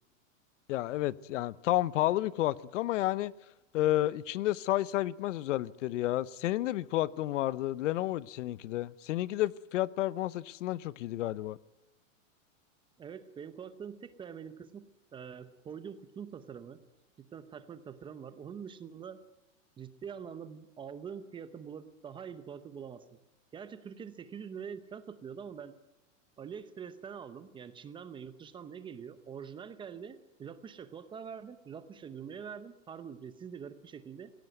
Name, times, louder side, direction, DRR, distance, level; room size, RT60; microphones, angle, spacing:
voice 1, 0.7-3.3 3.7-11.6, left 15 dB, 65° left, 0.8 m, -31 dB
voice 2, 13.0-16.8 17.3-19.2 19.8-23.2 23.5-25.7 26.4-34.3, right 7 dB, 10° right, 0.7 m, -45 dB
22.5 x 17.0 x 9.3 m
supercardioid pair, 160°, 40 cm